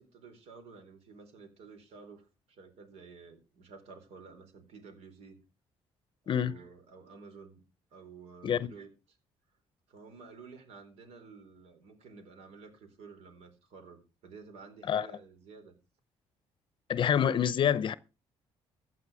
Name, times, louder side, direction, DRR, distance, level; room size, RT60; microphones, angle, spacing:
voice 1, 0.0-5.4 6.2-7.6 7.9-9.2 9.9-15.7, right 4 dB, 80° right, 4.1 m, -52 dB
voice 2, 6.3-6.6 8.4-8.7 14.9-15.1 16.9-17.9, left 9 dB, 50° left, 0.7 m, -27 dB
15.0 x 8.8 x 4.9 m
cardioid pair, 110°, 11 cm